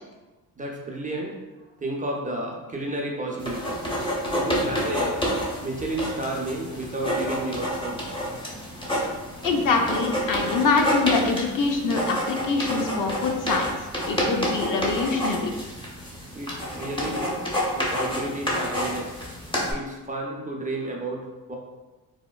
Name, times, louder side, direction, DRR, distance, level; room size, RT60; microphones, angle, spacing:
voice 1, 0.6-1.4 1.8-3.9 4.3-5.2 5.6-8.2 9.0-9.2 16.3-17.5 17.7-19.2 19.7-21.2 21.5-21.6, right 1 dB, 20° right, -1 dB, 0.5 m, -32 dB
sound 1, 3.4-19.7, equal, 15° left, 0.9 m, -29 dB
voice 2, 9.4-15.5, left 4 dB, 60° left, 3 dB, 0.5 m, -24 dB
4.0 x 2.1 x 2.2 m, 1.1 s
cardioid pair, 80°, 38 cm